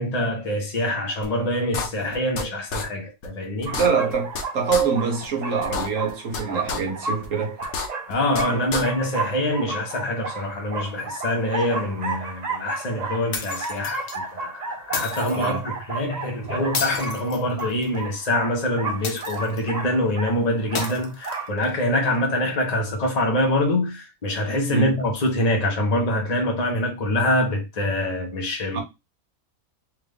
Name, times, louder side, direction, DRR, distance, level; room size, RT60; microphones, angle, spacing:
voice 1, 0.0-4.0 8.1-28.8, left 1 dB, 30° left, 1.0 m, -25 dB
sound 1, 1.2-1.3 1.7-2.4 2.7-2.8 3.2-3.3 3.6-4.4 4.7-4.8 5.2-5.3 5.6-6.4 6.7-6.8 7.2-7.3 7.6-8.4 8.7-8.8, left 4 dB, 85° left, 1.3 m, -28 dB
sound 2, 3.7-21.5, right 3 dB, 40° right, 0.6 m, -33 dB
voice 2, 3.8-7.6 8.5-8.8 15.3-15.7 24.7-25.0 28.7-28.8, right 6 dB, 65° right, 1.4 m, -25 dB
sound 3, 13.3-14.2 14.9-15.5 16.7-18.0 19.0-19.7 20.7-21.7, left 5 dB, 60° left, 0.9 m, -32 dB
3.7 x 2.6 x 3.4 m
omnidirectional pair, 1.4 m